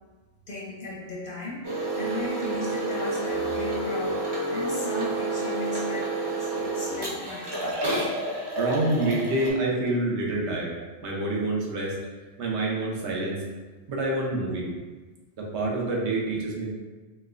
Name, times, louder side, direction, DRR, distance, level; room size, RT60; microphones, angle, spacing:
voice 1, 0.5-7.8, left 2 dB, 55° left, -4 dB, 0.6 m, -36 dB
sound 1, 1.6-9.5, right 2 dB, 35° right, 0.4 m, -29 dB
voice 2, 8.5-10.8 11.0-12.0 12.4-13.4 13.9-14.7 15.4-16.8, right 2 dB, 70° right, -2 dB, 0.9 m, -27 dB
4.2 x 2.2 x 2.4 m, 1.3 s
omnidirectional pair, 1.2 m